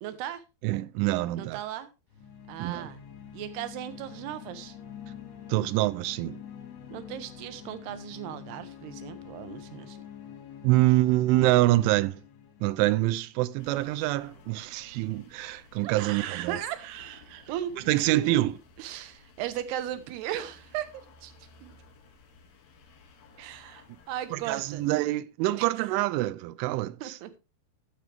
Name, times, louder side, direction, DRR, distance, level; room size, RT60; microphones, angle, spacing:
voice 1, 0.0-0.4 1.4-1.9 2.5-3.0 3.3-4.8 6.9-10.0 15.8-17.7 18.0-18.4 18.8-21.3 21.6-21.7 23.4-24.8 25.6-25.9 27.0-27.4, right 11 dB, 70° right, 2.8 m, -37 dB
voice 2, 0.6-1.6 2.6-2.9 5.5-6.4 10.6-12.2 12.6-16.6 17.9-18.6 24.3-27.4, right 17 dB, 90° right, 3.1 m, -26 dB
sound 1, 2.1-13.6, left 9 dB, 85° left, 4.6 m, -46 dB
sound 2, 13.6-24.9, left 4 dB, 60° left, 2.9 m, -56 dB
14.0 x 6.4 x 3.4 m
omnidirectional pair, 5.4 m